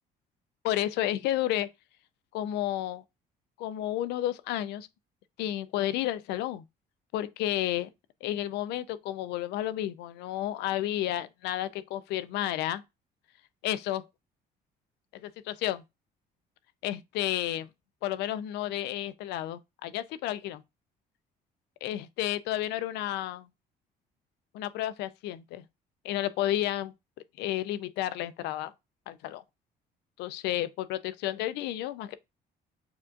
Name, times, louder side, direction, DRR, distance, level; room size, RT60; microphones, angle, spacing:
voice 1, 0.6-1.7 2.3-3.0 3.6-4.9 5.4-6.6 7.1-7.9 8.2-12.8 13.6-14.1 15.2-15.8 16.8-17.7 18.0-20.6 21.8-23.5 24.5-25.6 26.0-26.9 27.4-28.7 29.1-29.4 30.2-32.2, left 13 dB, 80° left, 0.4 m, -31 dB
6.9 x 2.5 x 2.4 m
cardioid pair, 110°, 17 cm